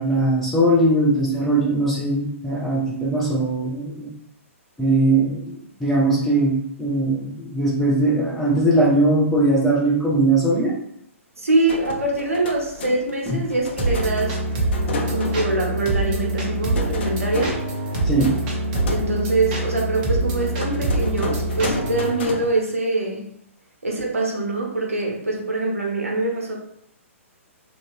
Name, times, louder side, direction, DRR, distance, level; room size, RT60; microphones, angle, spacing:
voice 1, 0.0-4.1 4.8-10.7 13.3-13.4 18.0-18.3, right 2 dB, 5° left, -7 dB, 0.7 m, -20 dB
voice 2, 11.4-14.4 15.1-17.6 18.9-23.2 23.8-26.6, right 2 dB, 75° right, -1 dB, 0.8 m, -24 dB
sound 1, 11.7-22.5, left 3 dB, 50° left, 0.5 m, -33 dB
sound 2, 13.8-22.1, right 1 dB, 35° right, 0.7 m, -25 dB
2.5 x 2.2 x 3.2 m, 0.73 s
figure-of-eight pair, 120°, 8 cm